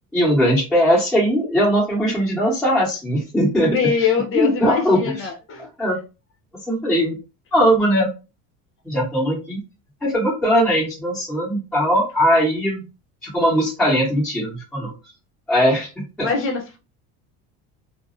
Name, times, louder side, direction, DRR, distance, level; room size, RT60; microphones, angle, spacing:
voice 1, 0.1-3.9 4.3-5.1 5.8-6.0 6.6-7.2 7.5-8.1 8.8-9.6 10.0-12.8 13.2-14.9 15.5-16.3, equal, ahead, 1.3 m, -19 dB
voice 2, 3.6-5.7 16.2-16.8, left 6 dB, 35° left, 0.8 m, -23 dB
2.5 x 2.0 x 2.7 m
cardioid pair, 120°, 35 cm